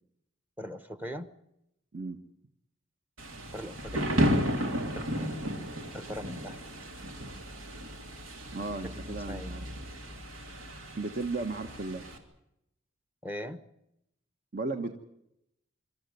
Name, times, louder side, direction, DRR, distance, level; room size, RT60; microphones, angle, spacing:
voice 1, 0.6-1.3 3.5-4.0 4.9-5.5 5.9-6.7 8.8-9.5 13.2-13.6, equal, 10° right, 11 dB, 0.9 m, -40 dB
Thunder / Rain, 3.2-12.2, equal, 80° right, 3.1 m, -33 dB
voice 2, 8.5-9.7 11.0-12.1 14.5-14.9, right 3 dB, 45° right, 7 dB, 1.2 m, -35 dB
25.5 x 13.5 x 9.3 m, 0.82 s
head